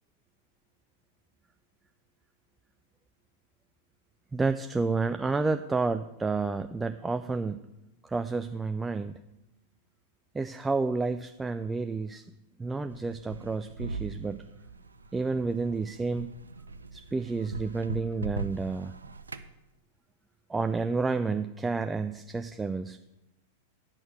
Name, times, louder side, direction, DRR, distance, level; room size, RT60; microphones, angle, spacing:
voice 1, 4.3-7.6 8.0-9.2 10.3-12.2 12.6-14.4 15.1-16.3 16.9-18.9 20.5-23.0, right 4 dB, 10° right, 9 dB, 0.3 m, -30 dB
sound 1, 12.9-19.5, right 3 dB, 75° right, 0.5 m, -40 dB
9.0 x 6.1 x 6.3 m, 0.95 s
figure-of-eight pair, 95°, 0 cm